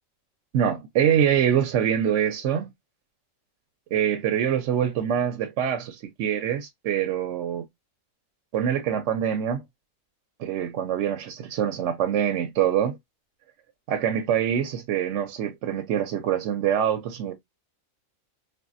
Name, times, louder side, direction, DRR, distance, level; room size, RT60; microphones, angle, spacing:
voice 1, 0.5-2.7 3.9-7.6 8.5-9.6 10.4-13.0 13.9-17.3, right 9 dB, 70° right, 0.8 m, -25 dB
3.4 x 2.1 x 2.4 m
omnidirectional pair, 1.4 m